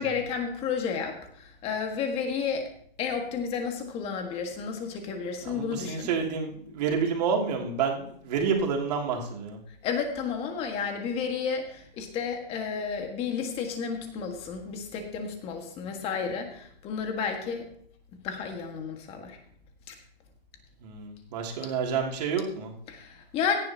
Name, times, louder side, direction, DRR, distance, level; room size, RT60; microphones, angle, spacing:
voice 1, 0.0-2.7 3.0-6.1 9.8-17.7 18.2-19.4 19.9-20.0 22.9-23.6, left 6 dB, 20° left, 4 dB, 1.8 m, -32 dB
voice 2, 5.4-9.6 20.8-22.7, right 6 dB, 45° right, 1 dB, 2.8 m, -29 dB
16.5 x 11.0 x 2.9 m, 0.63 s
hypercardioid pair, 155°, 29 cm